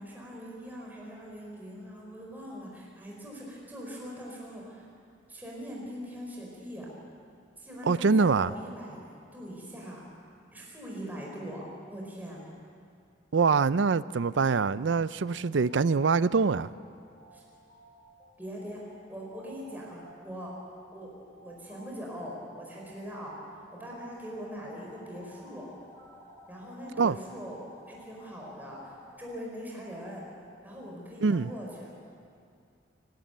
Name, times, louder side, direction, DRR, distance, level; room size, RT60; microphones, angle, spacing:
voice 1, 0.0-4.8 5.3-6.9 7.6-9.0 9.3-10.0 10.5-12.4 17.3-17.4 18.4-18.8 19.1-20.5 20.9-25.7 26.5-27.6 27.9-30.2 30.6-31.9, equal, 10° right, 4.6 m, -42 dB
voice 2, 7.8-8.5 13.3-16.7 27.0-27.2 31.2-31.5, right 4 dB, 75° right, 0.5 m, -24 dB
sound 1, 14.3-30.6, right 1 dB, 40° left, 6.3 m, -57 dB
sound 2, 23.8-29.2, left 3 dB, 15° left, 2.5 m, -55 dB
28.5 x 13.0 x 9.1 m
head